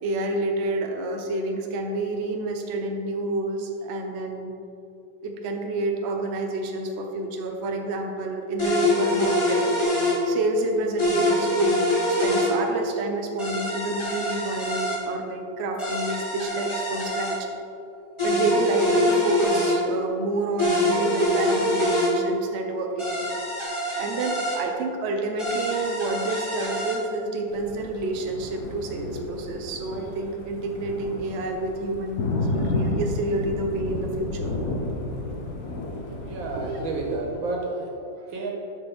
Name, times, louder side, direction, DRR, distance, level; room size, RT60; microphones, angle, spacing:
voice 1, 0.0-4.5 5.2-9.6 10.2-11.8 12.2-17.5 18.2-23.3 24.0-34.6, right 2 dB, 55° right, 3 dB, 0.8 m, -28 dB
sound 1, 8.6-10.2 11.0-12.5 13.4-15.0 15.8-17.4 18.2-19.8 20.6-22.1 23.0-24.6 25.4-27.0, left 1 dB, 15° left, 1.4 m, -24 dB
Thunder, 27.5-37.2, left 2 dB, 55° left, 1.4 m, -32 dB
voice 2, 36.0-38.5, right 2 dB, 90° right, 0 dB, 2.0 m, -31 dB
11.5 x 5.2 x 3.5 m, 2.7 s
omnidirectional pair, 2.1 m